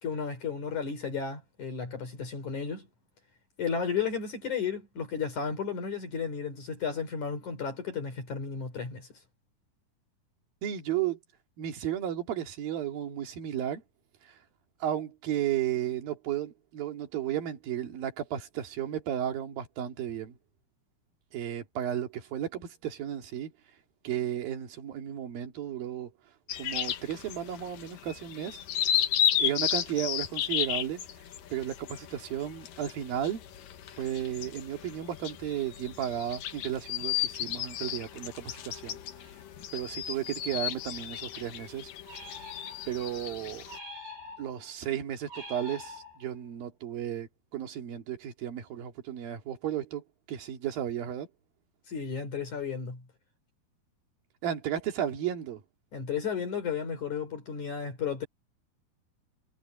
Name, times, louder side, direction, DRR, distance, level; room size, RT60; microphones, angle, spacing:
voice 1, 0.0-2.9 3.6-9.1 51.9-53.0 55.9-58.3, left 6 dB, 50° left, 4.9 m, -33 dB
voice 2, 10.6-11.2 11.6-13.8 14.2-14.4 14.8-20.4 21.3-23.5 24.0-26.1 26.6-28.6 29.4-31.0 31.5-33.4 34.0-39.0 39.7-41.9 42.9-43.6 44.4-51.3 54.4-55.6, right 10 dB, 65° right, 4.0 m, -34 dB
sound 1, 26.5-43.8, left 10 dB, 65° left, 2.8 m, -34 dB
sound 2, 42.1-43.1 43.7-44.7 45.3-46.5, left 2 dB, 80° right, 10.0 m, -45 dB
omnidirectional pair, 4.7 m